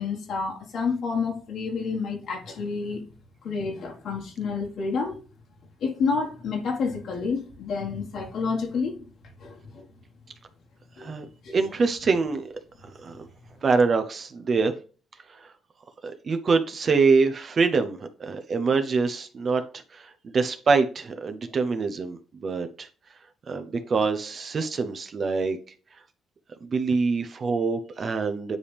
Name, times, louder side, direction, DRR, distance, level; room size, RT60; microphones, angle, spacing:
voice 1, 0.0-3.0 3.4-5.2 5.8-9.0 9.4-9.9 11.0-11.1 11.4-11.5, left 5 dB, 70° left, 1.5 m, -29 dB
voice 2, 11.5-12.5 13.0-13.2 13.6-14.7 15.4-15.5 16.0-22.9 23.5-25.6 26.6-28.6, right 4 dB, 45° right, 0.7 m, -25 dB
9.6 x 3.4 x 3.3 m
cardioid pair, 90°, 0 cm